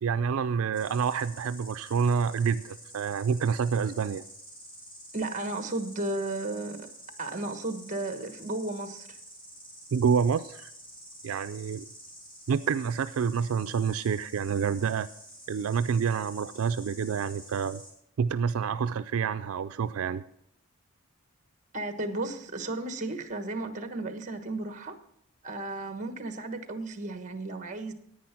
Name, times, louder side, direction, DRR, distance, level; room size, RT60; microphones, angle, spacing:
voice 1, 0.0-4.2 9.9-10.7 11.2-11.9 12.5-15.1 15.5-17.8 18.2-20.2, right 6 dB, 80° right, 12 dB, 0.4 m, -28 dB
Insect, 0.7-17.9, equal, 25° left, 3.5 m, -49 dB
voice 2, 5.1-6.9 7.2-9.2 21.7-25.0 25.4-27.9, right 2 dB, 35° right, 8 dB, 1.2 m, -34 dB
10.5 x 9.2 x 5.8 m, 0.74 s
head